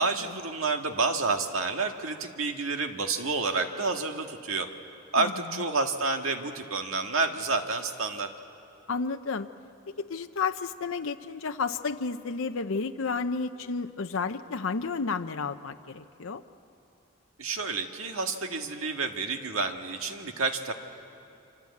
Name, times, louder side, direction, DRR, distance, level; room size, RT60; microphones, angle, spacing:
voice 1, 0.0-4.7 5.1-8.3 17.4-20.7, right 3 dB, 85° right, 4 dB, 1.8 m, -29 dB
voice 2, 5.2-5.6 8.9-9.5 10.0-16.4, left 4 dB, 75° left, 7 dB, 0.7 m, -32 dB
26.0 x 26.0 x 8.5 m, 2.7 s
head